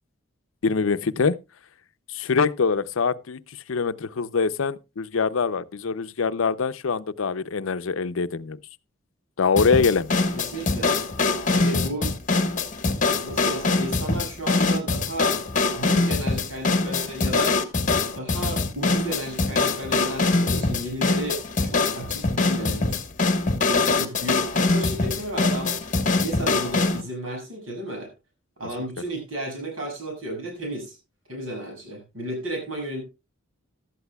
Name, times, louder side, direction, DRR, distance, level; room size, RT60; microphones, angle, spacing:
voice 1, 0.6-1.4 2.1-3.4 3.7-8.6 9.4-10.1, left 5 dB, 80° left, 0.6 m, -24 dB
sound 1, 9.6-27.0, left 3 dB, 40° left, 1.2 m, -23 dB
voice 2, 10.3-10.9 11.5-12.1 13.2-15.3 15.8-17.6 18.1-23.0 23.7-25.7 26.2-28.1 28.6-31.0 31.3-33.0, right 1 dB, 80° right, 7.1 m, -33 dB
16.5 x 12.0 x 2.3 m
head